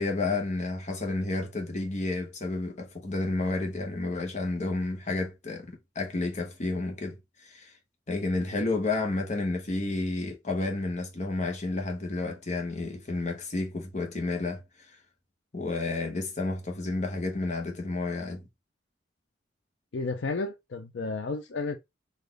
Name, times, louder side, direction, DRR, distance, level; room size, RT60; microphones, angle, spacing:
voice 1, 0.0-7.7 8.1-15.0 15.5-18.4, left 2 dB, 40° left, 1.0 m, -31 dB
voice 2, 19.9-21.8, left 3 dB, 75° left, 0.5 m, -32 dB
4.1 x 2.6 x 3.2 m
head